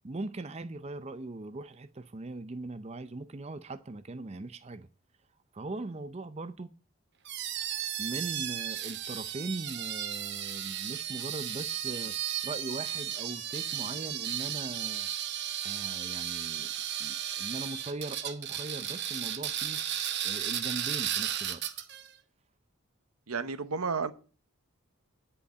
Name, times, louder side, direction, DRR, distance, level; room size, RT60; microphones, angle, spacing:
voice 1, 0.0-4.9 5.5-6.7 8.0-12.2 12.4-15.1 15.6-16.7 17.0-19.8 20.2-21.6, right 2 dB, 30° right, 0.5 m, -40 dB
sound 1, 7.2-22.1, right 10 dB, 50° right, 1.0 m, -34 dB
voice 2, 23.3-24.1, right 5 dB, 80° right, 1.0 m, -31 dB
10.5 x 5.7 x 7.8 m
head